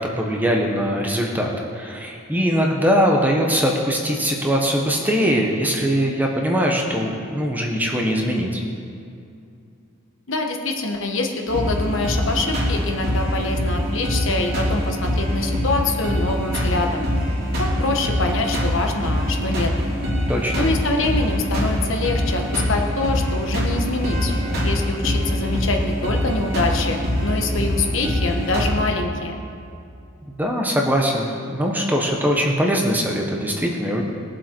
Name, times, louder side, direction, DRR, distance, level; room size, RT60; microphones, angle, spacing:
voice 1, 0.0-8.6 20.3-20.7 30.3-34.0, equal, 10° right, 0 dB, 1.1 m, -21 dB
voice 2, 10.3-17.1 17.6-19.7 20.5-29.4, left 2 dB, 60° left, 2 dB, 1.2 m, -25 dB
sound 1, 11.5-28.7, equal, 45° right, 3.0 m, -23 dB
20.0 x 7.6 x 4.5 m, 2.5 s
head